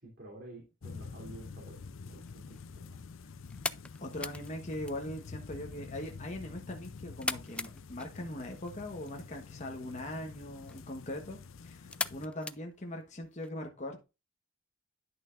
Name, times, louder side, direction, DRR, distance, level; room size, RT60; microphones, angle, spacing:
voice 1, 0.0-3.1, right 1 dB, 55° right, 3.1 m, -51 dB
sound 1, 0.8-12.3, left 4 dB, 85° left, 0.6 m, -48 dB
sound 2, 2.1-13.5, left 2 dB, 5° left, 0.4 m, -43 dB
voice 2, 4.0-14.0, left 1 dB, 40° left, 1.3 m, -41 dB
11.0 x 6.3 x 2.5 m
head